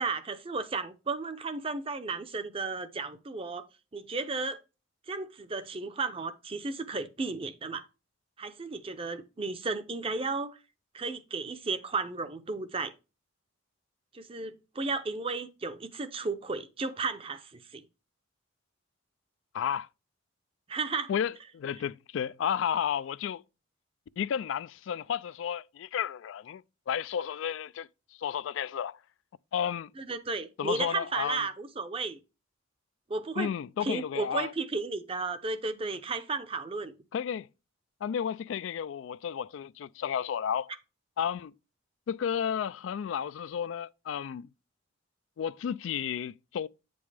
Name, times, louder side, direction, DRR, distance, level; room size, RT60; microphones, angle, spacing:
voice 1, 0.0-3.7 3.9-4.6 5.1-7.8 8.4-10.6 10.9-12.9 14.1-17.8 20.7-21.1 30.0-32.2 33.1-33.5 33.8-36.9, right 3 dB, 30° right, 0.6 m, -34 dB
voice 2, 19.5-19.9 21.1-23.4 24.2-27.9 28.2-29.0 29.5-29.9 30.6-31.5 33.4-34.5 37.1-37.5 38.0-40.7 41.2-41.5 42.1-44.5 45.4-46.7, left 8 dB, 75° left, 0.3 m, -32 dB
8.7 x 5.3 x 3.3 m
head